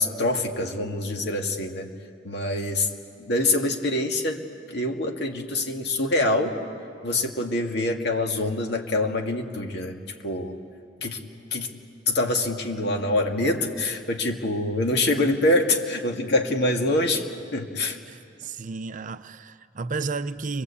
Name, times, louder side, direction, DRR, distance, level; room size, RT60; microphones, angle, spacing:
voice 1, 0.0-1.9 2.2-2.9 3.2-4.4 4.7-6.5 7.0-10.6 11.0-11.2 11.5-11.7 12.1-17.3 17.5-18.0, left 2 dB, 65° left, 2.1 m, -25 dB
voice 2, 18.1-20.6, right 4 dB, 45° right, 0.6 m, -32 dB
30.0 x 23.0 x 8.5 m
head